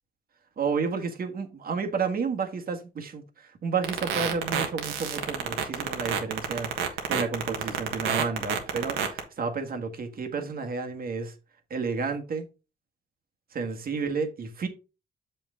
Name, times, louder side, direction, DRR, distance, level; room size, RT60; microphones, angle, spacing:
voice 1, 0.6-3.2 3.6-11.3 11.7-12.5 13.5-14.7, right 5 dB, 50° right, 1.5 m, -31 dB
sound 1, 3.8-9.2, right 8 dB, 90° right, 1.4 m, -28 dB
6.9 x 5.6 x 3.6 m
cardioid pair, 90°, 20 cm